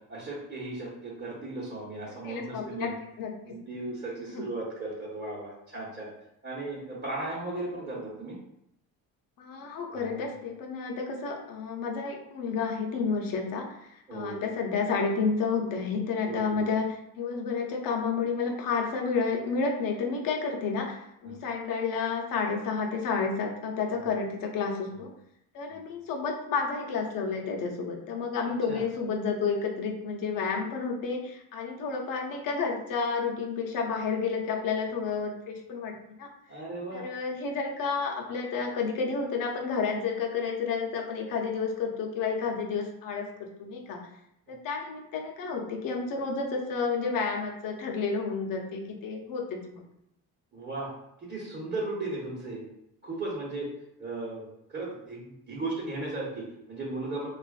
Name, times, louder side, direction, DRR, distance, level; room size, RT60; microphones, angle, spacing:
voice 1, 0.0-2.9 3.4-6.1 6.4-8.4 9.9-10.3 14.1-14.4 16.2-16.6 21.2-21.3 23.9-24.1 24.9-25.0 25.7-25.8 28.7-28.8 36.5-37.0 50.5-50.9 51.2-52.6 53.0-53.7 54.0-54.4 54.7-57.3, right 2 dB, 25° right, -7 dB, 1.0 m, -36 dB
voice 2, 2.2-2.9 3.2-3.5 4.3-4.4 9.4-25.1 25.5-36.3 36.9-44.0 44.5-49.8, left 5 dB, 60° left, 2 dB, 0.7 m, -31 dB
3.3 x 2.4 x 2.4 m, 0.78 s
cardioid pair, 90°, 37 cm